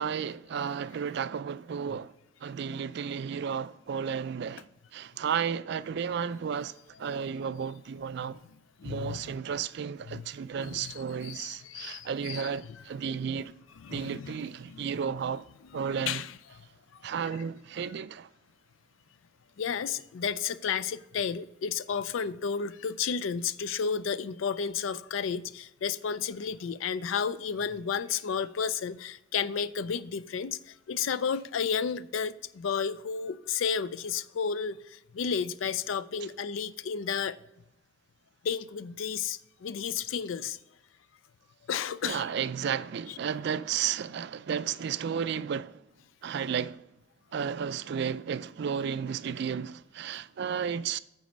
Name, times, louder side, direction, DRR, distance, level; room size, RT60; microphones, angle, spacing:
voice 1, 0.0-2.1 2.4-8.4 8.8-13.5 13.9-15.4 15.7-16.2 17.0-18.3 42.0-45.8 46.2-46.8 47.3-51.0, right 7 dB, 60° right, 0.3 m, -33 dB
voice 2, 8.8-9.2 10.1-10.3 10.6-12.8 13.8-14.3 14.7-14.8 16.1-16.4 19.6-37.4 38.4-40.6 41.7-42.3, left 6 dB, 80° left, 0.4 m, -32 dB
9.3 x 4.2 x 6.1 m
head